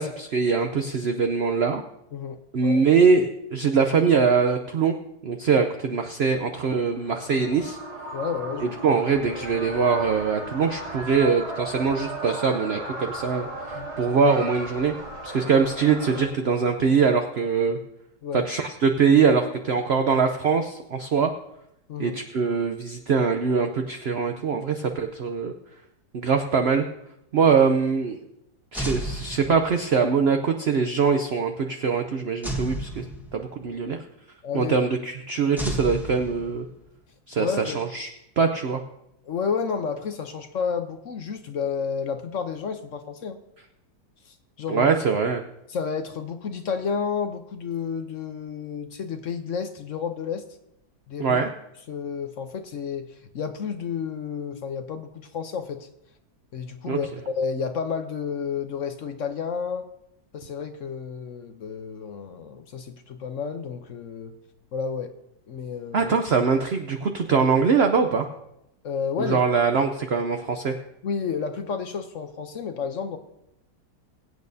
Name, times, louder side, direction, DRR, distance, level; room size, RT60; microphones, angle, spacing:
voice 1, 0.0-1.8 2.5-4.9 5.2-7.8 8.6-14.9 15.2-17.8 18.3-21.3 22.0-25.5 26.1-26.9 27.3-28.2 28.7-33.0 33.3-34.0 34.5-36.6 37.3-38.1 38.4-38.8 44.7-45.4 51.2-51.5 56.9-57.0 65.9-68.3 69.2-70.7, right 5 dB, 55° right, 5 dB, 0.7 m, -22 dB
voice 2, 2.1-2.9 8.1-8.8 13.7-13.9 18.2-18.4 21.9-22.2 34.4-34.7 37.4-37.8 39.2-43.4 44.3-44.9 45.7-50.4 51.1-51.4 51.9-55.9 56.5-57.1 57.4-59.9 60.3-64.3 64.7-65.1 65.5-66.1 68.8-69.4 71.0-73.2, left 6 dB, 55° left, 8 dB, 1.0 m, -31 dB
sound 1, 6.8-16.2, right 2 dB, 80° right, 3.5 m, -36 dB
sound 2, 28.7-30.0 32.4-33.7 35.6-36.9, right 1 dB, ahead, 1.1 m, -32 dB
22.0 x 8.7 x 2.7 m, 0.83 s
omnidirectional pair, 1.8 m